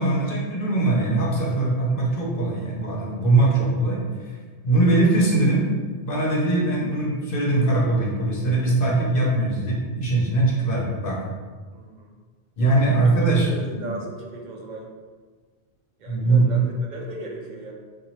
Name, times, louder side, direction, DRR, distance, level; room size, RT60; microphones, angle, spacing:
voice 1, 0.0-4.4 4.6-11.2 12.6-13.9 16.1-16.5, right 2 dB, 60° left, -3 dB, 0.9 m, -21 dB
voice 2, 11.7-12.1 13.4-14.9 16.0-17.7, right 2 dB, 55° right, 0 dB, 0.6 m, -37 dB
2.9 x 2.5 x 4.1 m, 1.5 s
omnidirectional pair, 1.1 m